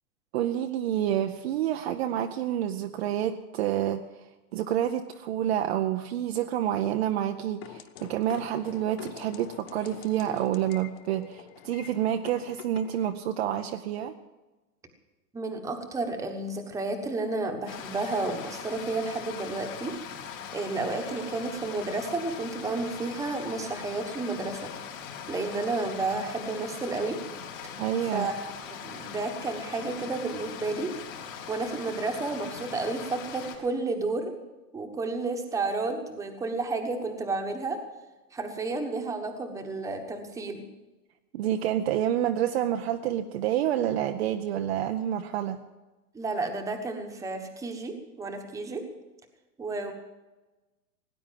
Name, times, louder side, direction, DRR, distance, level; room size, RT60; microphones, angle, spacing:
voice 1, 0.3-14.1 27.8-28.3 41.3-45.6, right 11 dB, 40° right, 6 dB, 0.7 m, -28 dB
sound 1, 7.6-13.1, left 12 dB, 40° left, 0.8 m, -46 dB
voice 2, 15.3-20.0 20.5-24.6 25.3-27.2 28.1-28.4 28.7-30.9 31.5-34.3 34.7-37.8 38.3-40.6 46.1-48.8 49.6-49.9, right 3 dB, 5° right, 4 dB, 1.2 m, -31 dB
Stream, 17.7-33.6, left 7 dB, 55° left, 4.2 m, -41 dB
18.0 x 9.7 x 7.5 m, 1.2 s
hypercardioid pair, 150°, 48 cm